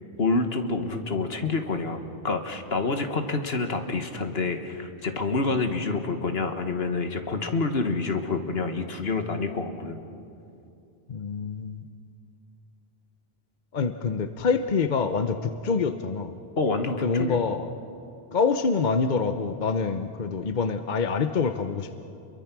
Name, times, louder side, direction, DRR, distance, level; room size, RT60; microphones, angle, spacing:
voice 1, 0.2-10.0 16.6-17.4, left 3 dB, 65° left, 6 dB, 1.8 m, -27 dB
voice 2, 11.1-11.8 13.7-16.4 17.0-17.7 18.3-21.9, left 5 dB, 50° left, 9 dB, 0.9 m, -26 dB
29.5 x 23.0 x 6.1 m, 2.7 s
omnidirectional pair, 1.1 m